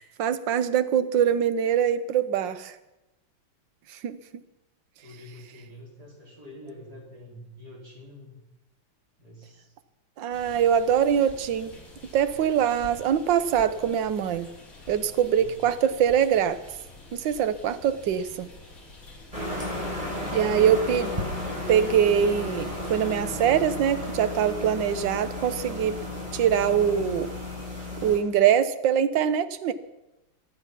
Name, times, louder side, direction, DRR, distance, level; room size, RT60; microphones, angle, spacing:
voice 1, 0.0-2.7 3.9-4.4 10.2-11.7 12.1-14.5 14.9-16.6 17.1-18.5 20.3-21.1 21.7-26.0 26.3-27.3 28.0-29.7, right 9 dB, 65° right, 12 dB, 1.5 m, -23 dB
voice 2, 5.0-8.4 9.2-9.7 15.3-15.6, left 1 dB, 45° right, -2 dB, 5.1 m, -46 dB
sound 1, 10.3-23.2, left 3 dB, 40° left, 4.5 m, -48 dB
sound 2, 19.3-28.2, left 1 dB, 15° right, 4.5 m, -33 dB
24.5 x 9.5 x 5.8 m, 0.96 s
omnidirectional pair, 2.4 m